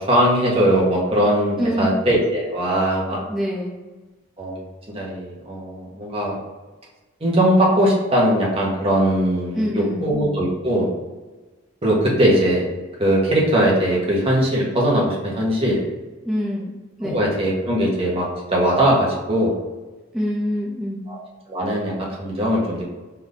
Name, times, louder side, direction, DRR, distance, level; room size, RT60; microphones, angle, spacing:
voice 1, 0.0-3.2 4.4-4.6 4.9-6.4 7.2-10.9 11.8-12.6 13.0-15.8 17.0-19.6 21.1-21.2 21.5-22.8, right 1 dB, 30° right, -3 dB, 1.0 m, -20 dB
voice 2, 1.6-1.9 3.3-3.8 9.5-10.1 16.3-16.7 17.0-17.2 20.1-21.0, equal, ahead, -6 dB, 0.4 m, -24 dB
3.3 x 2.6 x 3.9 m, 1.2 s
head